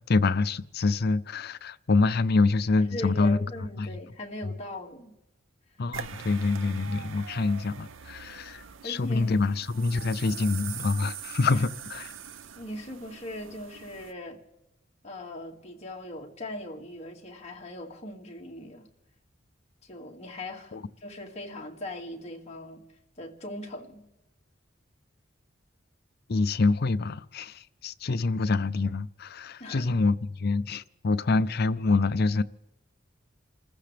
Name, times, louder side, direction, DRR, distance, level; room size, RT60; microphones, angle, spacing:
voice 1, 0.1-3.4 3.8-3.9 4.4-4.5 5.8-12.1 20.7-20.8 26.3-32.4, left 3 dB, 55° left, 0.5 m, -26 dB
voice 2, 2.8-5.1 8.8-9.4 11.5-11.7 12.6-14.4 15.0-18.9 19.8-22.8 23.2-24.1 29.6-29.8, left 1 dB, 35° left, 2.2 m, -40 dB
sound 1, 5.9-14.1, right 7 dB, 85° right, 0.7 m, -42 dB
28.5 x 15.0 x 3.4 m
head